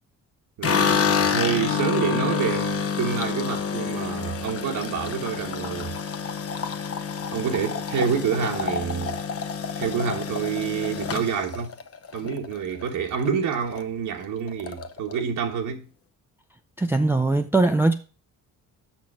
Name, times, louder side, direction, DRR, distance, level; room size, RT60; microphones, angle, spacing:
sound 1, 0.6-12.9 13.2-13.8 14.1-14.2 14.5-15.2, left 6 dB, 45° left, 0.9 m, -28 dB
voice 1, 0.6-5.9 7.3-9.2 9.8-11.7 12.1-15.9, right 7 dB, 85° right, 1.3 m, -28 dB
voice 2, 16.8-17.9, right 2 dB, 10° right, 0.4 m, -20 dB
6.2 x 5.9 x 6.1 m
cardioid pair, 100°, 31 cm